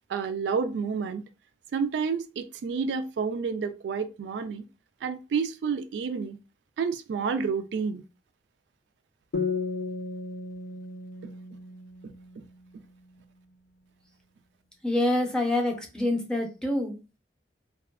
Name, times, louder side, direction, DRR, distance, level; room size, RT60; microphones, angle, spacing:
voice 1, 0.1-1.2 1.7-4.6 5.0-6.4 6.8-8.0, right 5 dB, 80° right, 0.3 m, -29 dB
sound 1, 9.3-12.8, left 4 dB, 75° left, 0.4 m, -34 dB
voice 2, 14.8-17.0, left 1 dB, 5° left, 0.5 m, -26 dB
2.6 x 2.3 x 2.2 m
head